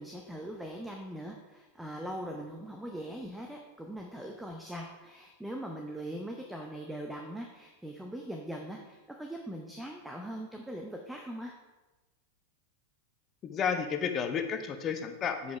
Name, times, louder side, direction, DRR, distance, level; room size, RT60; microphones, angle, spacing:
voice 1, 0.0-11.5, right 1 dB, 5° right, 1 dB, 0.7 m, -41 dB
voice 2, 13.4-15.6, left 7 dB, 30° left, 7 dB, 0.8 m, -32 dB
7.0 x 5.1 x 4.6 m, 1.1 s
figure-of-eight pair, 90°, 0 cm